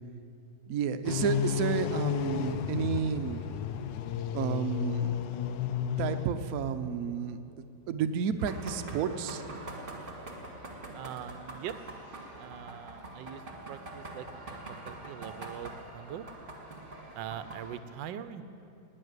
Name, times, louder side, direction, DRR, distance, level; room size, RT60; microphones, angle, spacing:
voice 1, 0.7-3.6 4.3-5.2 6.0-7.4 7.9-9.7, right 7 dB, 65° right, 8 dB, 1.0 m, -31 dB
sound 1, 1.0-6.3, left 9 dB, 80° left, 1.3 m, -32 dB
sound 2, 8.4-17.8, right 2 dB, 30° right, 1.8 m, -44 dB
voice 2, 10.9-11.8 12.4-16.2 17.1-18.4, right 10 dB, 85° right, 12 dB, 1.3 m, -42 dB
19.0 x 6.6 x 9.5 m, 2.8 s
omnidirectional pair, 1.9 m